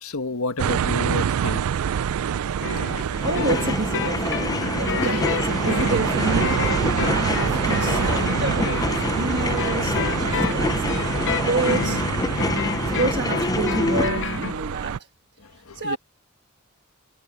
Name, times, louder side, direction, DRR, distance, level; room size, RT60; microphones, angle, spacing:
voice 1, 0.0-1.6 2.2-2.4 4.5-5.2 15.7-16.0, left 3 dB, 90° left, 1.7 m, -31 dB
sound 1, 0.6-15.0, right 8 dB, 80° right, 0.4 m, -27 dB
sound 2, 2.6-14.6, left 6 dB, 60° left, 0.6 m, -30 dB
voice 2, 3.0-11.0 11.3-12.1 12.8-15.1 15.7-16.0, right 3 dB, 50° right, 1.5 m, -29 dB
sound 3, 3.1-14.1, left 2 dB, 15° left, 0.5 m, -26 dB
head